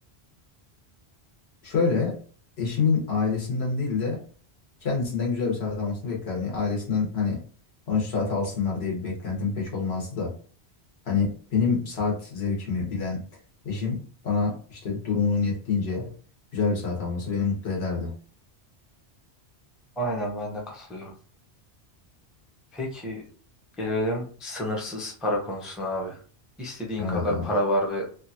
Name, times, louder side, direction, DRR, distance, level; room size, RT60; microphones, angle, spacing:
voice 1, 1.6-2.2 2.6-4.2 4.8-7.4 7.9-10.3 11.0-13.2 13.6-16.1 16.5-18.2 27.0-27.5, left 4 dB, 70° left, -2 dB, 1.3 m, -27 dB
voice 2, 20.0-21.1 22.7-23.2 23.8-26.2 26.6-28.1, equal, ahead, -1 dB, 0.5 m, -29 dB
2.9 x 2.4 x 2.6 m, 0.43 s
omnidirectional pair, 1.1 m